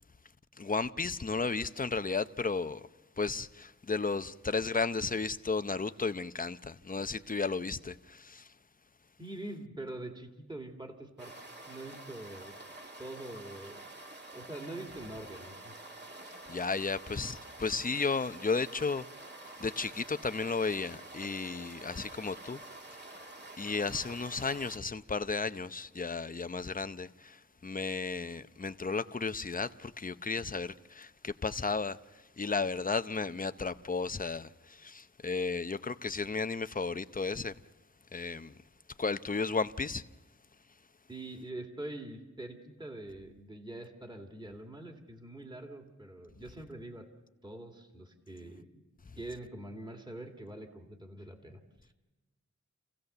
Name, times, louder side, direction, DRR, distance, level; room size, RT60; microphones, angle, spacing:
voice 1, 0.6-2.8 3.2-8.5 16.5-19.0 19.6-22.6 23.6-32.0 32.4-37.6 38.1-38.5 39.0-40.0, left 4 dB, 30° left, 0.7 m, -34 dB
voice 2, 9.2-12.6 13.0-13.9 14.3-15.8 41.1-47.1 47.4-48.7 49.2-51.9, right 1 dB, 15° right, 2.3 m, -44 dB
sound 1, 11.2-24.8, right 2 dB, 35° right, 2.2 m, -48 dB
28.5 x 16.5 x 6.8 m
wide cardioid pair, 105°, 30 cm